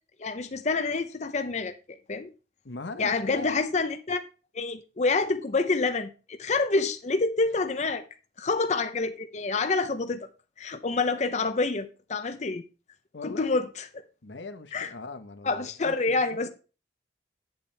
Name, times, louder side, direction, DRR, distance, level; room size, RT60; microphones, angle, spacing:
voice 1, 0.2-1.7 2.1-2.3 3.0-4.2 4.5-8.0 8.4-10.3 10.6-12.6 13.2-13.9 14.7-14.9 15.4-16.5, left 3 dB, 40° left, 0.6 m, -27 dB
voice 2, 2.6-3.5 13.1-13.5 14.2-16.5, left 3 dB, 90° left, 1.0 m, -40 dB
8.7 x 8.1 x 3.4 m
head